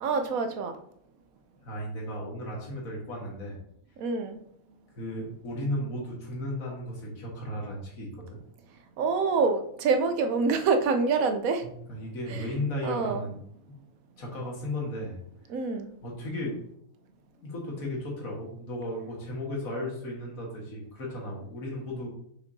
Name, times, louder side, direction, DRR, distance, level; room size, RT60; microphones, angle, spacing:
voice 1, 0.0-0.8 4.0-4.4 9.0-11.7 12.3-12.5 12.8-13.2 15.5-15.9, right 4 dB, 80° right, 1.2 m, -26 dB
voice 2, 1.6-3.6 4.9-8.4 11.9-13.4 14.2-15.2 16.0-16.6 17.4-22.1, left 1 dB, 75° left, 2.0 m, -35 dB
6.2 x 5.7 x 2.7 m
omnidirectional pair, 1.5 m